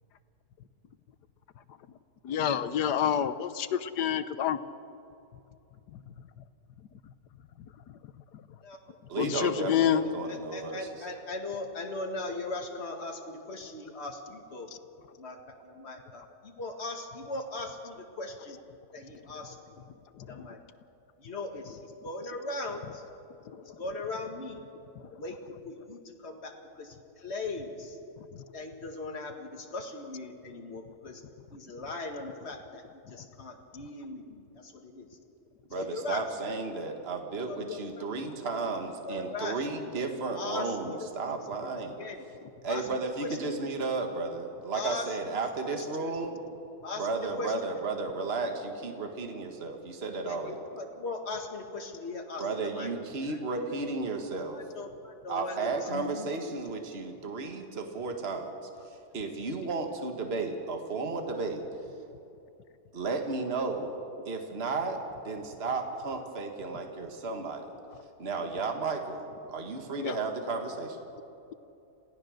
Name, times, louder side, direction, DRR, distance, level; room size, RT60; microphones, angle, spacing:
voice 1, 2.2-4.6 5.9-6.0 9.2-10.0 20.2-20.5 23.5-23.6 25.1-25.2 70.0-70.2, left 9 dB, 75° left, 12 dB, 1.4 m, -28 dB
voice 2, 9.1-10.9 35.7-42.1 42.6-46.5 47.0-50.6 52.4-54.6 55.3-58.6 59.1-61.6 62.9-64.0 64.3-65.0 65.2-67.7 68.2-71.0, right 3 dB, 35° right, 4 dB, 1.8 m, -33 dB
voice 3, 10.3-14.7 15.2-15.4 15.6-18.6 18.9-19.8 20.3-20.6 21.2-23.0 23.6-24.6 25.2-25.4 25.6-28.0 28.5-31.2 31.5-32.8 33.1-35.1 35.7-36.2 37.4-38.0 39.0-39.7 40.4-40.8 41.6-41.7 42.0-42.2 42.7-42.9 43.2-43.6 44.7-45.1 45.6-46.1 46.8-47.1 47.4-47.5 50.2-52.9 53.3-53.4 54.5-56.4, left 2 dB, 40° left, 2 dB, 2.2 m, -39 dB
27.5 x 16.5 x 6.5 m, 2.8 s
omnidirectional pair, 1.8 m